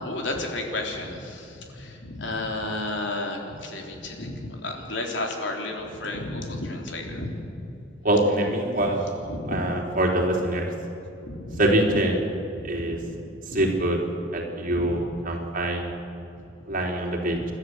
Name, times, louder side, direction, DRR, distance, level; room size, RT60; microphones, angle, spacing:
voice 1, 0.0-7.3 7.6-7.7 8.8-8.9 9.3-9.6 11.2-11.6 11.9-12.0 12.6-13.2 13.5-13.8 14.8-15.0 16.4-16.5 17.4-17.5, left 2 dB, 80° left, 2 dB, 3.6 m, -32 dB
voice 2, 8.0-9.0 9.5-10.7 11.6-12.2 12.6-13.0 13.5-14.0 14.3-15.9 16.7-17.4, right 1 dB, 50° right, 0 dB, 3.7 m, -24 dB
29.5 x 13.0 x 8.0 m, 2.9 s
head